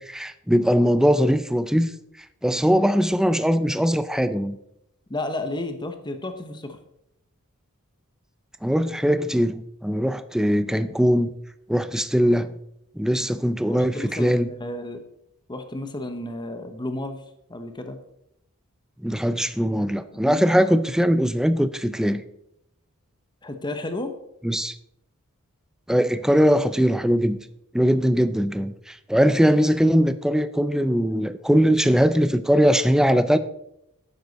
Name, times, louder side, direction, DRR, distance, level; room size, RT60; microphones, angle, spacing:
voice 1, 0.0-1.9 2.4-4.6 8.6-11.3 11.7-12.5 13.0-14.5 19.0-22.2 24.4-24.8 25.9-27.4 27.7-33.4, equal, 5° right, 0.4 m, -21 dB
voice 2, 5.1-6.8 13.7-15.0 15.5-17.2 17.5-18.0 20.1-20.6 23.4-24.1, left 2 dB, 20° left, 0.9 m, -32 dB
11.5 x 9.5 x 4.1 m
head